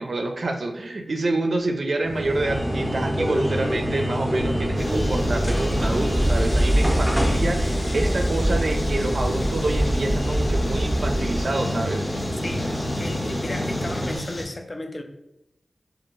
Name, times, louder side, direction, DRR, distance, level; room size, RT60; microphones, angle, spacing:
voice 1, 0.0-12.1, right 2 dB, 65° right, 4 dB, 0.4 m, -27 dB
sound 1, 2.0-14.2, equal, ahead, 0.6 m, -27 dB
sound 2, 4.4-11.4, right 1 dB, 25° left, 0.8 m, -25 dB
sound 3, 4.8-14.4, left 1 dB, 65° left, 0.7 m, -34 dB
voice 2, 13.0-15.0, left 2 dB, 45° left, 5 dB, 0.4 m, -34 dB
2.7 x 2.4 x 3.0 m, 0.85 s
wide cardioid pair, 70°, 0 cm